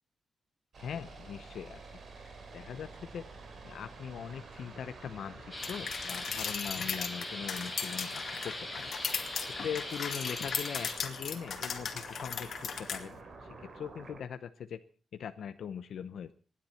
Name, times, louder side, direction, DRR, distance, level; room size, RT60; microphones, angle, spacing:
sound 1, 0.7-14.2, right 3 dB, 50° right, 4.0 m, -49 dB
voice 1, 0.8-3.2 3.6-13.2 13.7-14.8 15.1-16.3, left 8 dB, 85° left, 10 dB, 0.8 m, -41 dB
sound 2, 5.5-10.9, left 1 dB, 5° left, 5.5 m, -41 dB
sound 3, 5.6-13.0, left 6 dB, 60° left, 2.3 m, -37 dB
27.5 x 11.0 x 4.3 m, 0.37 s
wide cardioid pair, 175°, 0 cm